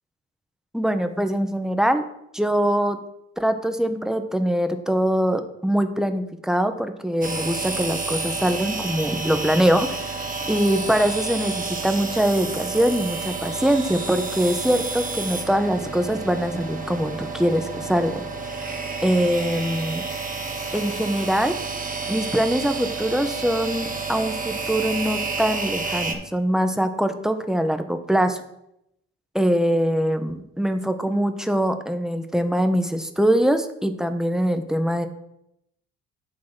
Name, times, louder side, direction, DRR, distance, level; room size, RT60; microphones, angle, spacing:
voice 1, 0.7-2.0 2.3-3.0 3.4-18.2 19.0-20.0 20.7-21.5 22.1-28.4 29.3-35.1, equal, ahead, 8 dB, 0.9 m, -23 dB
sound 1, 7.2-26.1, right 4 dB, 25° right, 1.4 m, -30 dB
8.9 x 3.6 x 6.0 m, 0.80 s
hypercardioid pair, 45°, 35 cm